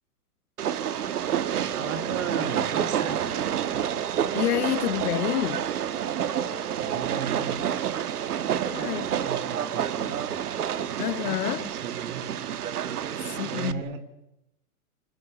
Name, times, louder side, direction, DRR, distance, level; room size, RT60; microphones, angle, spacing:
Train, 0.6-13.7, right 9 dB, 75° right, 1.7 m, -29 dB
voice 1, 1.6-3.4 6.8-7.7 8.4-10.4 11.2-12.3 13.5-14.0, right 6 dB, 60° right, 3.8 m, -36 dB
voice 2, 4.3-5.7 8.7-9.1 11.0-11.7 13.2-13.8, left 12 dB, 80° left, 0.9 m, -28 dB
27.5 x 25.0 x 7.1 m
hypercardioid pair, 165°, 45 cm